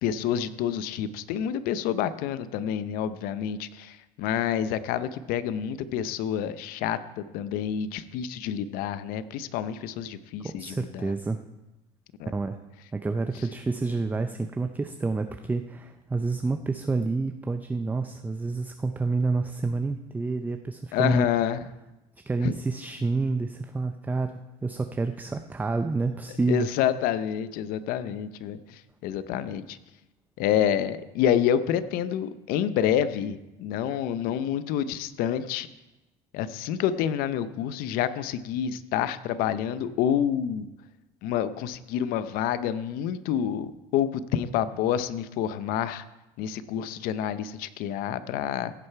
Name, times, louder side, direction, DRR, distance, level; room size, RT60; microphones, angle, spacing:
voice 1, 0.0-11.1 12.2-12.3 20.9-21.6 22.4-22.5 26.5-29.8 30.4-35.7 36.3-40.7 41.2-46.0 46.4-48.7, left 9 dB, 70° left, 14 dB, 0.6 m, -28 dB
voice 2, 10.4-11.4 12.3-12.6 12.9-21.3 22.3-26.7, right 3 dB, 10° right, 8 dB, 0.4 m, -28 dB
16.0 x 6.6 x 4.6 m, 1.0 s
cardioid pair, 120°, 16 cm